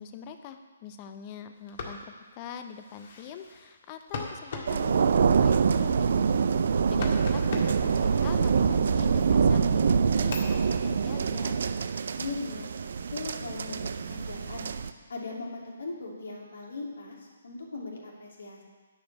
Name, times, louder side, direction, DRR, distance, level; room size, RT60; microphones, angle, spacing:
voice 1, 0.0-6.5 6.9-11.6, left 7 dB, 30° left, 8 dB, 0.8 m, -43 dB
sound 1, 1.5-9.2 9.7-12.3, left 3 dB, 50° left, 1.8 m, -42 dB
sound 2, 4.7-14.9, right 6 dB, 60° right, 0.5 m, -25 dB
voice 2, 12.2-12.7 13.1-14.7 15.1-18.6, left 3 dB, 70° left, -2 dB, 2.8 m, -39 dB
10.5 x 5.2 x 8.1 m, 1.4 s
figure-of-eight pair, 140°, 0 cm